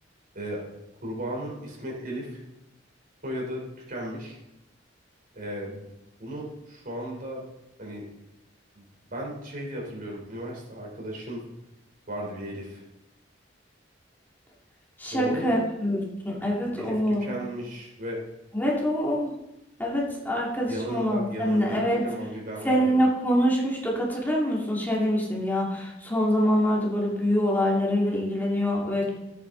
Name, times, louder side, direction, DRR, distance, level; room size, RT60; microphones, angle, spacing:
voice 1, 1.0-2.4 3.2-3.6 3.9-4.4 5.3-5.9 6.2-7.4 7.8-8.0 8.8-11.4 12.1-12.8 15.1-15.6 16.6-18.2 20.7-23.0, equal, 50° right, -2 dB, 3.5 m, -35 dB
voice 2, 15.0-17.3 18.5-19.3 19.8-22.0 22.6-29.1, equal, 10° left, -4 dB, 2.4 m, -25 dB
15.0 x 8.8 x 3.9 m, 0.90 s
head